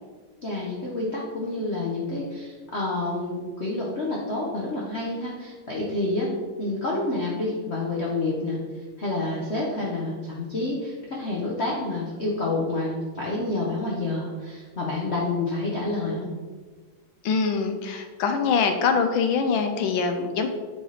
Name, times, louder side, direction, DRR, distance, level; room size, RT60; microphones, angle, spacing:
voice 1, 0.4-6.3 6.6-8.6 9.0-16.3, left 2 dB, 55° left, -4 dB, 0.7 m, -28 dB
voice 2, 17.2-20.5, left 5 dB, 80° left, 6 dB, 1.3 m, -24 dB
7.6 x 3.9 x 3.2 m, 1.4 s
omnidirectional pair, 2.3 m